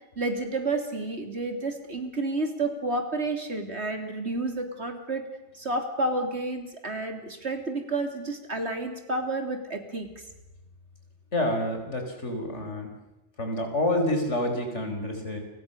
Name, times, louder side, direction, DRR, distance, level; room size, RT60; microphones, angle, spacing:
voice 1, 0.2-5.2 5.5-10.1, right 2 dB, 65° right, 5 dB, 3.7 m, -30 dB
voice 2, 11.3-12.9 13.4-15.4, left 1 dB, 75° left, 5 dB, 5.3 m, -28 dB
30.0 x 25.0 x 7.0 m, 0.98 s
omnidirectional pair, 1.2 m